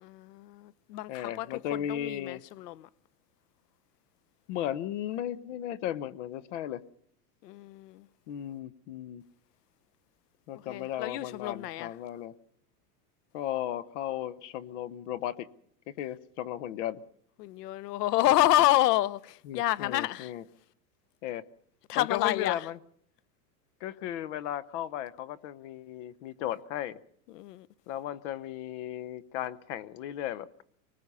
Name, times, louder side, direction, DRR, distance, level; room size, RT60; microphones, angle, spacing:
voice 1, 0.0-1.6 1.9-2.9 7.4-8.1 10.5-11.9 17.4-20.3 21.9-22.7 27.3-27.7, left 15 dB, 85° left, 0.8 m, -28 dB
voice 2, 1.1-2.4 4.5-6.8 8.3-9.2 10.5-12.3 13.3-15.5 15.9-17.0 19.5-20.4 21.2-21.4 21.9-22.8 23.8-27.0 27.9-30.6, left 11 dB, 50° left, 0.9 m, -35 dB
24.0 x 20.0 x 5.5 m
supercardioid pair, 160°, 47 cm